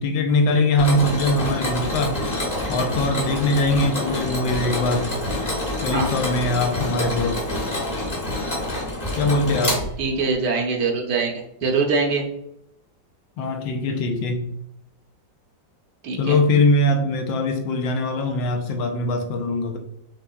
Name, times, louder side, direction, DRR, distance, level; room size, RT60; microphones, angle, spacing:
voice 1, 0.0-2.2 2.7-5.1 5.8-7.4 9.2-9.8 13.4-14.5 16.2-19.8, left 2 dB, 85° left, 5 dB, 1.4 m, -22 dB
Mechanisms, 0.8-10.3, left 1 dB, 25° left, 1.0 m, -27 dB
voice 2, 10.0-12.2 16.0-16.4, right 4 dB, 70° right, 2 dB, 1.2 m, -23 dB
5.6 x 3.3 x 2.3 m, 0.78 s
omnidirectional pair, 2.0 m